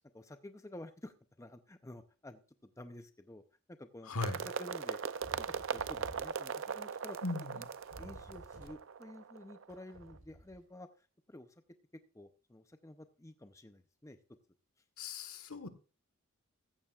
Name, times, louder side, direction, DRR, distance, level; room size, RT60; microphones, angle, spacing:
voice 1, 0.1-3.4 3.8-4.1 4.4-5.0 5.4-5.5 5.7-7.2 7.5-7.6 8.0-10.9 11.3-11.5 12.1-14.2, left 1 dB, 15° left, 9 dB, 0.5 m, -51 dB
voice 2, 4.0-4.4 7.2-7.7 15.0-15.7, left 3 dB, 80° left, 10 dB, 1.3 m, -38 dB
sound 1, 4.2-10.1, right 6 dB, 60° right, 0.5 m, -40 dB
sound 2, 5.2-6.3 7.4-7.5 7.6-8.8 9.7-10.6, equal, 90° right, 7.8 m, -53 dB
14.5 x 14.0 x 2.4 m, 0.36 s
head